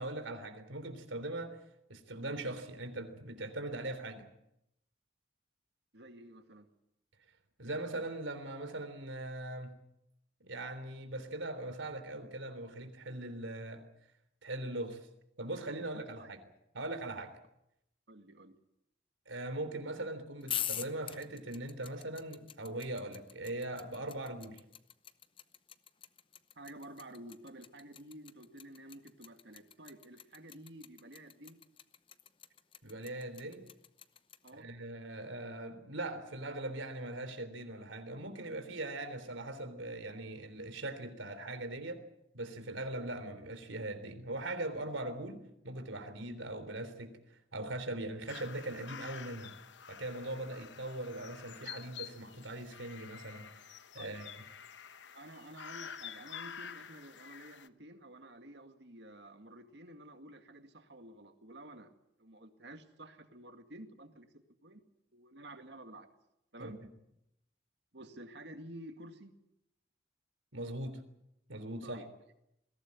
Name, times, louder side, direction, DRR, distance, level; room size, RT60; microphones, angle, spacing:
voice 1, 0.0-1.6 1.9-4.3 7.6-9.7 10.4-13.8 14.4-15.1 15.4-16.4 16.7-17.4 19.3-24.6 32.8-33.7 34.6-42.0 42.3-49.5 49.9-54.4 66.6-66.9 70.5-71.0 71.5-72.0, right 2 dB, 85° right, 9 dB, 3.4 m, -41 dB
voice 2, 5.9-6.7 15.8-15.9 16.2-16.3 18.1-18.6 26.6-31.6 34.4-34.7 54.0-54.2 55.1-61.9 62.2-64.8 65.1-66.1 66.5-66.8 67.9-69.3 71.8-72.1, right 1 dB, 65° right, 7 dB, 2.2 m, -51 dB
sound 1, 20.4-34.5, left 10 dB, 25° left, 0.7 m, -43 dB
sound 2, 48.3-57.7, left 8 dB, 70° left, 0.9 m, -49 dB
21.5 x 16.5 x 9.6 m, 0.81 s
head